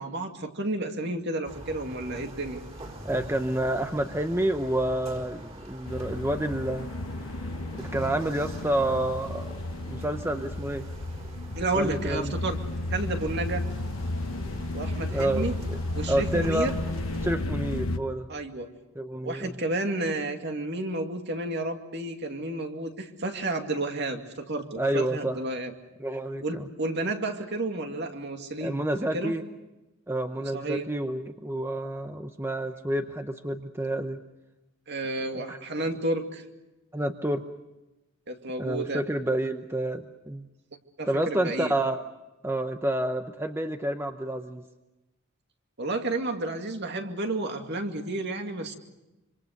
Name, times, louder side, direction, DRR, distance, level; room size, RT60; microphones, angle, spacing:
voice 1, 0.0-2.6 11.6-12.6 12.9-13.6 14.7-15.5 15.9-16.7 18.3-18.7 19.2-25.7 26.4-28.8 29.1-29.3 30.5-30.9 34.9-36.4 38.3-39.0 41.0-41.7 45.8-48.8, right 2 dB, 50° right, 4 dB, 2.4 m, -31 dB
sound 1, 1.4-17.4, right 1 dB, 30° right, 4.5 m, -44 dB
voice 2, 3.0-6.9 7.7-9.5 9.9-10.9 11.7-12.3 15.1-15.8 16.1-16.7 17.2-18.3 19.0-19.5 24.8-25.4 26.0-26.7 28.6-29.5 30.1-34.2 35.3-35.6 36.9-37.4 38.6-40.5 41.1-42.0 42.4-44.6, right 1 dB, 10° right, 7 dB, 0.8 m, -29 dB
sound 2, 5.9-18.0, left 2 dB, 70° left, 1.1 m, -33 dB
26.0 x 26.0 x 6.6 m, 1.0 s
head